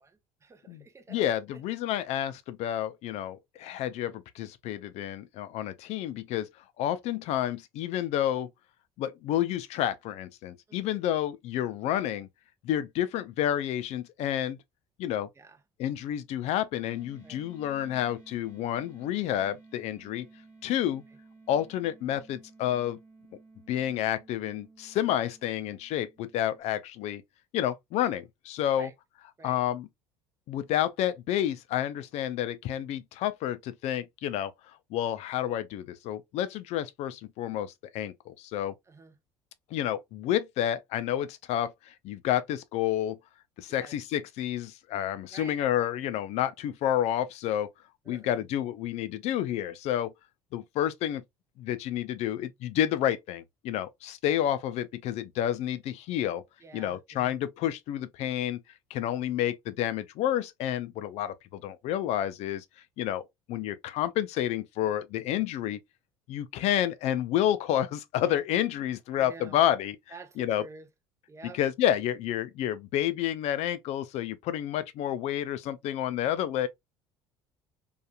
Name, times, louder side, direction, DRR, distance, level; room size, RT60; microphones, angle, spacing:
voice 1, 0.0-1.3 10.7-11.0 15.4-15.6 17.2-17.5 28.7-28.9 29.4-29.6 38.9-39.2 43.7-43.9 45.3-45.6 48.0-48.5 56.6-57.3 64.8-64.9 69.1-69.6 70.1-70.9 71.3-71.6, right 4 dB, 25° right, 0.7 m, -49 dB
voice 2, 0.7-6.5 6.8-8.5 9.0-12.3 12.6-14.6 15.0-15.3 15.8-20.3 20.6-21.0 21.5-23.0 23.7-27.2 27.5-28.9 29.4-29.9 30.5-34.5 34.9-38.7 39.7-43.2 43.6-47.7 48.1-50.1 50.5-51.2 51.6-56.4 56.7-58.6 58.9-62.6 63.0-65.8 66.3-70.0 70.4-70.6 71.4-76.7, left 11 dB, 65° left, 0.4 m, -30 dB
sound 1, 16.9-26.6, right 3 dB, 25° left, 1.1 m, -55 dB
2.8 x 2.4 x 2.3 m
supercardioid pair, 75°, 12 cm